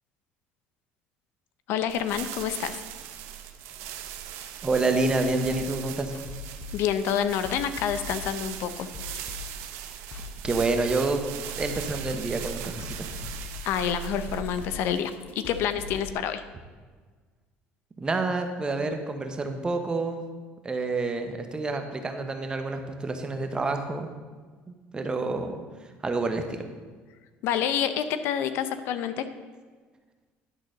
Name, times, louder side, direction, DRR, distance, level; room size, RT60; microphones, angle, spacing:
voice 1, 1.7-2.8 6.7-8.9 13.6-16.4 27.4-29.2, left 9 dB, 70° left, 11 dB, 0.6 m, -28 dB
sound 1, 1.9-15.0, right 10 dB, 80° right, 0.8 m, -39 dB
voice 2, 4.6-6.1 10.4-11.2 11.6-13.1 18.0-20.2 20.6-24.1 24.7-25.6 26.0-26.6, right 3 dB, 20° right, 6 dB, 0.9 m, -28 dB
sound 2, 5.4-16.1, left 6 dB, 50° left, 0.9 m, -41 dB
11.0 x 4.0 x 6.4 m, 1.4 s
cardioid pair, 120°, 4 cm